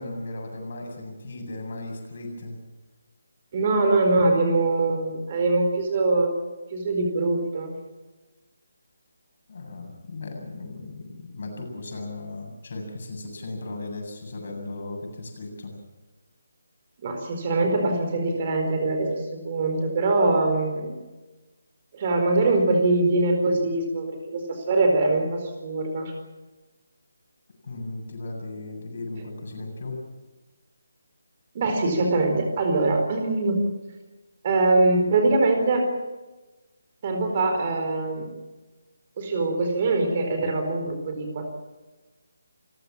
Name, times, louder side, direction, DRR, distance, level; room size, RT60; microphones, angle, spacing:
voice 1, 0.0-2.6 9.5-15.7 27.6-30.0, left 2 dB, 45° left, 2 dB, 7.8 m, -36 dB
voice 2, 3.5-6.3 6.7-7.8 17.0-20.9 21.9-26.1 31.5-33.7 34.4-35.9 37.0-38.3 39.2-41.5, right 2 dB, 30° right, 4 dB, 4.5 m, -23 dB
28.5 x 16.0 x 7.4 m, 1.2 s
figure-of-eight pair, 150°, 0 cm